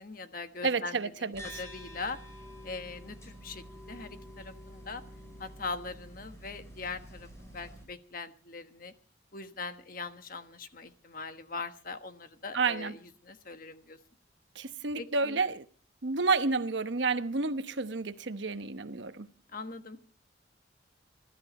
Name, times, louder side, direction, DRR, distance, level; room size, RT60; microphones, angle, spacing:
voice 1, 0.0-2.2 2.6-5.0 5.4-8.9 9.3-13.0 13.2-14.0 14.9-15.4 19.5-20.1, left 4 dB, 45° left, 1.3 m, -41 dB
voice 2, 0.6-1.6 12.5-12.9 14.5-15.6 16.0-19.3, right 4 dB, 65° right, 1.0 m, -30 dB
sound 1, 1.3-7.8, equal, 15° left, 5.9 m, -48 dB
21.5 x 13.0 x 4.3 m
head